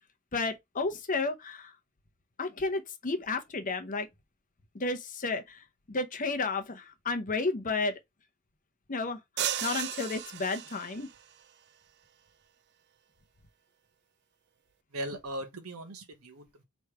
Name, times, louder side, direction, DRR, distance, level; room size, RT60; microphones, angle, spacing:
voice 1, 0.3-1.7 2.4-4.1 4.7-7.9 8.9-11.1, left 3 dB, 35° left, 0.8 m, -32 dB
sound 1, 9.4-11.2, right 10 dB, 50° right, 0.4 m, -34 dB
voice 2, 14.9-16.6, right 1 dB, 75° right, 1.0 m, -39 dB
3.4 x 3.1 x 4.5 m
head